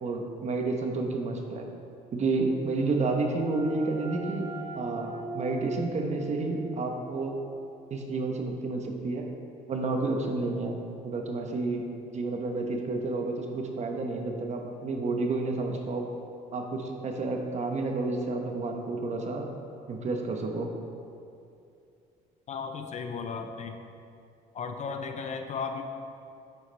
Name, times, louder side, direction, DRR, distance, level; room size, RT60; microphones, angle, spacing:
voice 1, 0.0-1.6 2.1-4.5 4.7-7.4 7.9-9.2 9.7-10.8 11.0-11.9 12.1-16.0 16.5-19.5 19.9-20.7, right 3 dB, 40° right, 3 dB, 1.1 m, -30 dB
sound 1, 2.7-8.2, right 1 dB, 20° right, 1.0 m, -42 dB
voice 2, 22.5-23.8 24.5-25.8, left 5 dB, 45° left, 6 dB, 0.7 m, -35 dB
9.5 x 8.0 x 3.4 m, 2.5 s
cardioid pair, 110°, 17 cm